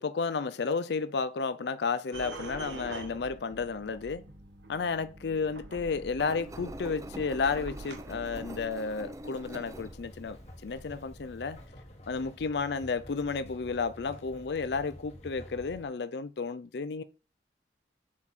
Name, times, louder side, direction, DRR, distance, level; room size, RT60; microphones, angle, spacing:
voice 1, 0.0-4.2 4.7-11.6 12.1-17.0, left 4 dB, 65° left, 0.5 m, -32 dB
sound 1, 2.1-8.6, right 2 dB, 80° right, 1.1 m, -45 dB
Engine, 6.2-11.7, equal, 20° right, 0.6 m, -45 dB
sound 2, 9.6-15.9, equal, 35° left, 1.4 m, -49 dB
7.4 x 4.4 x 4.1 m
head